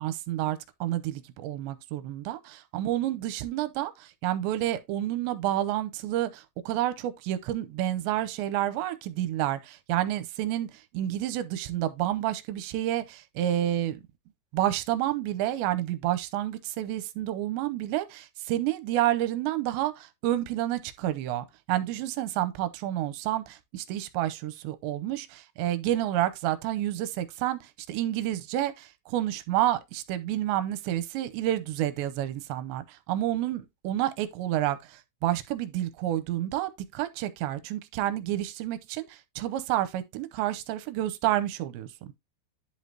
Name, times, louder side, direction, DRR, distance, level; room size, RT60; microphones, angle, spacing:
voice 1, 0.0-2.4 2.7-14.0 14.5-41.9, right 13 dB, 85° right, 2.9 m, -29 dB
11.0 x 5.2 x 2.8 m
omnidirectional pair, 5.3 m